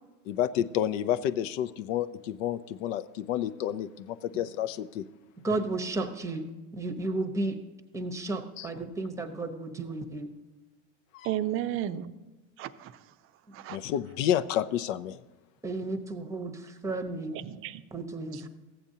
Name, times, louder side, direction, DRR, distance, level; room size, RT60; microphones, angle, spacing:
voice 1, 0.3-5.1 8.6-8.7 11.1-11.3 13.7-15.2, left 11 dB, 80° left, 13 dB, 0.6 m, -30 dB
voice 2, 5.4-7.6 7.9-10.3 13.5-13.6 15.6-17.4 17.9-18.5, right 2 dB, 10° right, 6 dB, 0.8 m, -33 dB
voice 3, 11.2-12.1 12.6-13.0 13.5-13.8 17.3-17.8, right 12 dB, 35° right, 12 dB, 0.5 m, -33 dB
14.5 x 8.6 x 2.8 m, 1.1 s
supercardioid pair, 125°, 37 cm